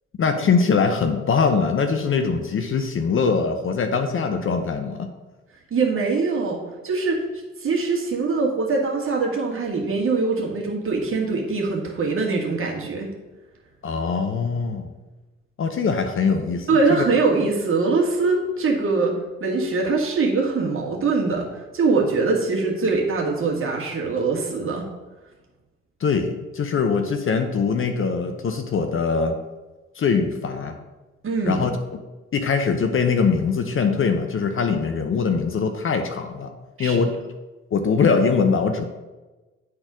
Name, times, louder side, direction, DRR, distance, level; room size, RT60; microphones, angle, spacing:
voice 1, 0.2-5.1 13.8-14.9 15.6-17.0 26.0-29.4 30.0-30.7 31.5-31.7 32.3-36.5 36.8-37.1 37.7-38.8, left 5 dB, 35° left, 6 dB, 0.8 m, -22 dB
voice 2, 5.7-7.2 7.6-13.1 16.7-19.1 19.4-24.9 31.2-31.6 36.8-37.0, right 4 dB, 35° right, -1 dB, 1.9 m, -23 dB
9.7 x 4.1 x 3.8 m, 1.2 s
figure-of-eight pair, 50°, 37 cm